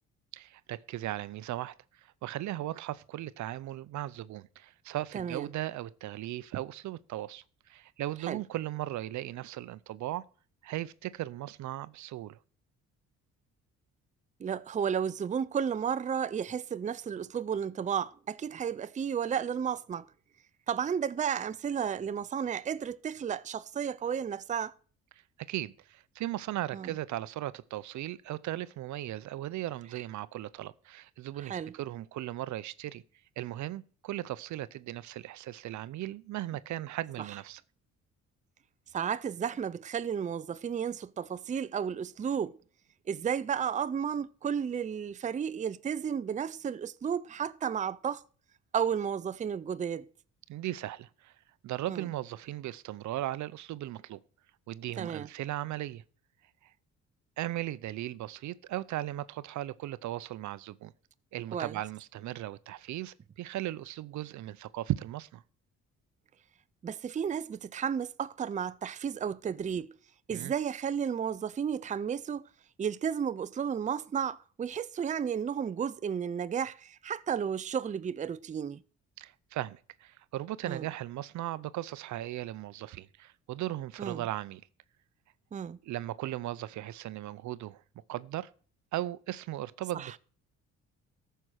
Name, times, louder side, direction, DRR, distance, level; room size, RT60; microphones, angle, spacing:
voice 1, 0.3-10.2 10.6-12.4 25.5-33.0 33.4-37.6 50.5-51.3 51.6-54.2 54.7-56.0 56.6-56.7 57.4-60.9 61.3-65.4 70.3-70.5 79.2-84.6 85.8-87.8 88.1-88.5 88.9-90.2, right 14 dB, 70° right, 0.6 m, -37 dB
voice 2, 5.1-5.5 8.3-8.4 14.4-20.1 20.7-24.7 26.7-26.9 31.4-31.7 38.9-42.6 43.1-48.2 48.7-50.1 51.9-52.1 55.0-55.3 61.5-61.8 66.8-70.0 70.3-72.5 72.8-78.8 80.6-80.9 84.0-84.2 85.5-85.8 89.9-90.1, right 7 dB, 25° right, 0.5 m, -33 dB
13.5 x 5.6 x 6.3 m
cardioid pair, 90°, 30 cm